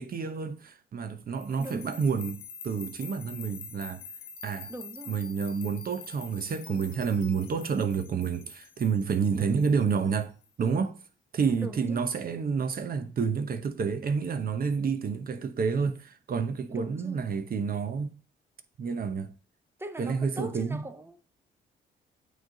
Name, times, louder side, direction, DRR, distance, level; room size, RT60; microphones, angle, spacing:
voice 1, 0.0-4.0 4.4-4.7 5.1-10.3 10.6-11.0 11.3-18.2 18.8-19.3 20.0-20.8, right 5 dB, 45° right, 0.9 m, -29 dB
sound 1, 1.4-10.5, left 5 dB, 85° left, 0.9 m, -46 dB
voice 2, 1.6-2.1 4.7-5.2 9.3-9.8 11.6-12.0 16.7-17.2 19.8-21.2, right 1 dB, 10° right, 0.8 m, -41 dB
8.6 x 3.3 x 3.8 m
cardioid pair, 90°, 20 cm